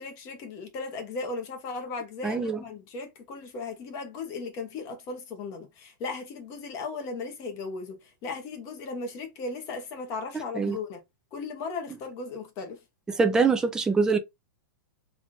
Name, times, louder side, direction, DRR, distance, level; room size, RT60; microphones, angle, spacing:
voice 1, 0.0-11.0 11.3-12.8, left 4 dB, 30° left, 1.0 m, -36 dB
voice 2, 2.2-2.6 10.6-10.8 13.1-14.2, right 4 dB, 5° right, 0.4 m, -24 dB
3.6 x 2.5 x 3.6 m
supercardioid pair, 165°, 11 cm